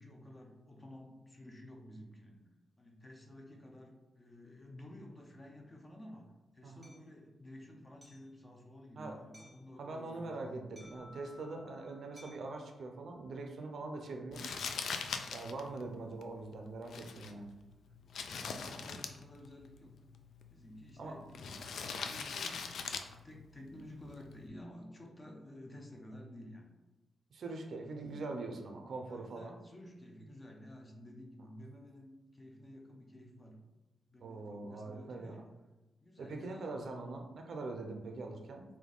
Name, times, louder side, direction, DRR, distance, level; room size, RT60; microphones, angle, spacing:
voice 1, 0.0-2.5 2.8-10.7 18.0-20.1 20.5-26.7 29.1-33.7 34.1-35.5 36.0-36.7, left 1 dB, 20° left, 1 dB, 0.5 m, -53 dB
Hammer, 6.8-7.0 8.0-8.3 9.3-9.7 10.8-11.2 12.2-12.5, equal, 5° right, 1.0 m, -59 dB
voice 2, 9.8-14.6 15.3-17.5 21.0-21.2 27.3-29.5 34.2-35.4 36.2-38.6, right 3 dB, 55° right, 3 dB, 0.5 m, -43 dB
Keyboard (musical), 10.8-13.2, left 2 dB, 55° left, 0.9 m, -60 dB
Crumpling crinkling, 14.3-24.5, left 5 dB, 80° left, 0.3 m, -43 dB
3.5 x 2.6 x 3.8 m, 1.1 s
wide cardioid pair, 155°, 0 cm